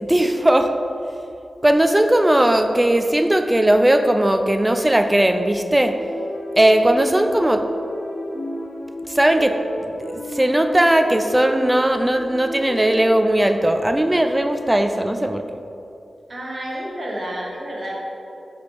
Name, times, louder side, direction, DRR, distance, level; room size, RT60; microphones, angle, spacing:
voice 1, 0.0-0.7 1.6-5.9 6.6-7.6 9.1-9.5 10.0-15.4, right 1 dB, 15° right, 7 dB, 0.5 m, -18 dB
sound 1, 5.8-13.1, equal, 90° left, 0.7 m, -32 dB
voice 2, 16.3-18.0, right 1 dB, 50° right, -4 dB, 1.5 m, -30 dB
5.1 x 4.9 x 4.6 m, 2.7 s
cardioid pair, 40°, 0 cm